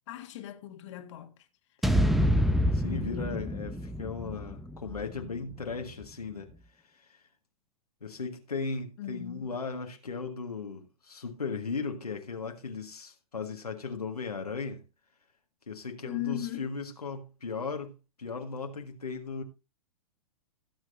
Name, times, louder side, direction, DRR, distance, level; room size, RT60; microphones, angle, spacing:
voice 1, 0.1-1.5 1.8-2.0 9.0-9.5 16.0-16.7, left 14 dB, 50° left, 1.8 m, -38 dB
sound 1, 1.8-6.0, equal, ahead, 0.9 m, -28 dB
voice 2, 2.7-6.5 6.8-7.3 8.0-14.8 15.7-19.4, left 4 dB, 85° left, 1.6 m, -37 dB
17.0 x 8.0 x 2.6 m
figure-of-eight pair, 105°, 19 cm